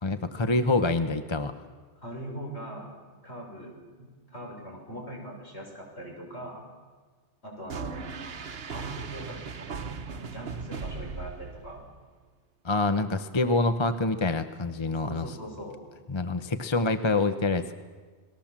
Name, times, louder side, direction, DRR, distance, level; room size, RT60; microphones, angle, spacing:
voice 1, 0.0-1.5 12.6-15.3 16.1-17.7, left 3 dB, 25° left, 9 dB, 0.9 m, -26 dB
voice 2, 2.0-3.7 4.0-6.6 7.4-8.0 8.7-9.8 10.1-11.8 14.9-15.8, right 1 dB, 65° left, -1 dB, 6.8 m, -41 dB
sound 1, 7.7-12.0, right 5 dB, 60° right, 1.2 m, -38 dB
30.0 x 20.5 x 7.4 m, 1.4 s
omnidirectional pair, 1.2 m